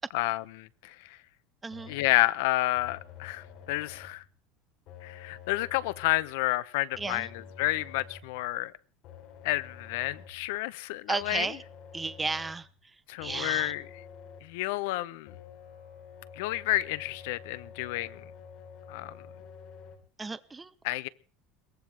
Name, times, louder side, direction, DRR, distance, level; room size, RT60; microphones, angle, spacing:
voice 1, 0.1-1.2 1.9-4.2 5.0-8.7 9.4-11.5 13.1-13.9 14.4-15.3 16.4-18.2 18.9-19.2 20.8-21.1, left 18 dB, 75° left, 0.9 m, -30 dB
voice 2, 1.6-2.0 7.0-7.3 11.1-11.6 11.9-12.7 13.2-13.7 20.2-20.7, right 3 dB, 10° right, 0.8 m, -33 dB
sound 1, 1.7-2.2 2.8-4.3 4.9-6.3 6.9-8.4 9.0-10.5 11.2-12.7 13.2-14.6 15.3-20.0, left 7 dB, 50° left, 3.9 m, -49 dB
22.5 x 18.5 x 3.5 m
cardioid pair, 160°, 0 cm